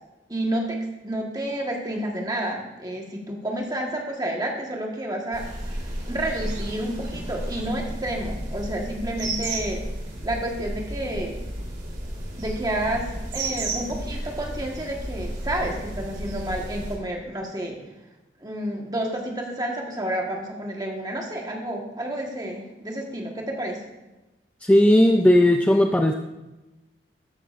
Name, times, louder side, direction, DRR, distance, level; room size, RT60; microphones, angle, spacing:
voice 1, 0.3-5.4 5.8-9.8 10.2-11.4 12.4-17.8 18.4-23.8, right 1 dB, 20° right, 0 dB, 1.4 m, -30 dB
sound 1, 5.3-17.0, right 1 dB, 40° right, 3.1 m, -33 dB
voice 2, 24.6-26.1, left 1 dB, 5° left, 3 dB, 0.4 m, -16 dB
13.5 x 9.6 x 2.5 m, 1.0 s
head